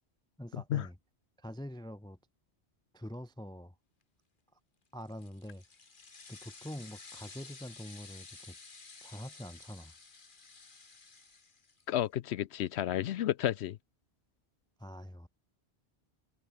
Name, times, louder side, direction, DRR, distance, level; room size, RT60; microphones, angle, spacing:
voice 1, 0.4-1.0 1.4-2.2 2.9-3.8 4.5-4.6 4.9-5.6 6.3-8.6 9.0-9.9 14.8-15.3, equal, 5° left, 0.8 m, -45 dB
sound 1, 5.0-12.0, left 4 dB, 50° left, 1.8 m, -53 dB
voice 2, 11.9-13.8, left 12 dB, 80° left, 0.9 m, -31 dB
omnidirectional pair, 1.1 m